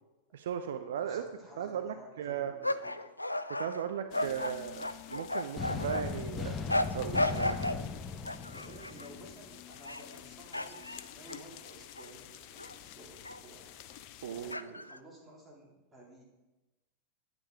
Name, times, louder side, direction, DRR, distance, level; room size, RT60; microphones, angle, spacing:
voice 1, 0.3-1.2 1.6-2.5 3.5-6.5 6.9-7.6 14.2-14.7, right 8 dB, 60° right, 8 dB, 0.5 m, -37 dB
voice 2, 0.9-3.1 4.1-4.7 5.9-6.1 8.5-16.2, right 1 dB, 15° right, -2 dB, 3.3 m, -54 dB
sound 1, 2.6-6.0 6.7-7.8 8.3-9.1 9.7-10.2 10.5-12.1 12.6-12.7 13.2-13.4 14.5-15.0, left 1 dB, 85° left, 0.4 m, -34 dB
sound 2, 4.1-14.6, left 12 dB, 45° left, 0.6 m, -51 dB
sound 3, 5.6-9.5, left 4 dB, 20° left, 1.0 m, -38 dB
9.7 x 9.1 x 4.7 m, 1.1 s
figure-of-eight pair, 90°, 0 cm